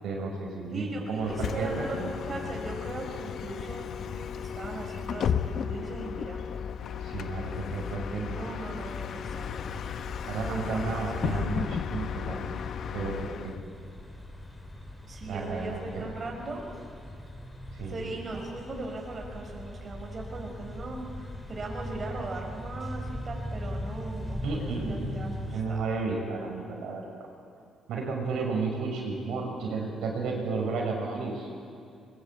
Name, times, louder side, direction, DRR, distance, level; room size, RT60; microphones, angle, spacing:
voice 1, 0.0-2.1 7.0-8.4 10.3-12.5 12.9-13.5 15.2-16.1 17.7-18.1 24.4-25.2 25.5-27.0 27.9-31.5, right 4 dB, 80° right, -1 dB, 5.9 m, -32 dB
voice 2, 0.7-6.4 8.2-9.6 10.4-11.5 15.1-16.7 17.9-25.9, right 2 dB, 40° right, 0 dB, 5.3 m, -39 dB
Bus, 1.2-13.6, left 7 dB, 65° left, 0.8 m, -34 dB
sound 1, 9.2-25.6, left 1 dB, 15° left, 4.4 m, -40 dB
22.5 x 21.5 x 8.6 m, 2.4 s
cardioid pair, 90°, 0 cm